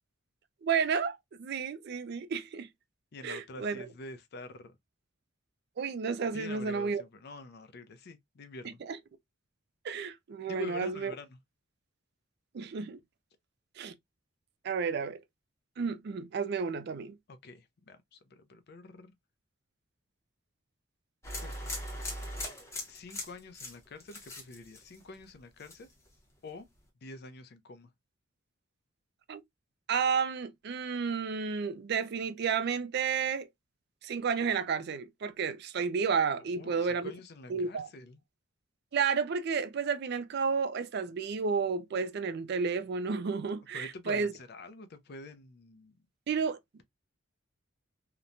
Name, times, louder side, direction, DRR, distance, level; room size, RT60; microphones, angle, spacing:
voice 1, 0.6-2.7 3.2-3.9 5.8-7.0 8.6-9.0 9.8-11.1 12.5-13.0 13.8-13.9 14.6-15.2 15.8-17.2 29.3-29.4 29.9-33.5 34.0-37.1 37.5-37.9 38.9-44.3 46.3-46.8, right 5 dB, 50° right, 0.3 m, -31 dB
voice 2, 3.1-4.8 6.3-8.8 10.5-11.4 17.3-19.1 21.4-21.7 22.9-25.9 26.4-26.7 27.0-27.9 36.5-38.2 43.7-45.9, left 2 dB, 50° left, 0.5 m, -47 dB
sound 1, 21.2-25.3 25.6-26.1, left 1 dB, 15° left, 0.7 m, -40 dB
2.9 x 2.1 x 2.5 m
head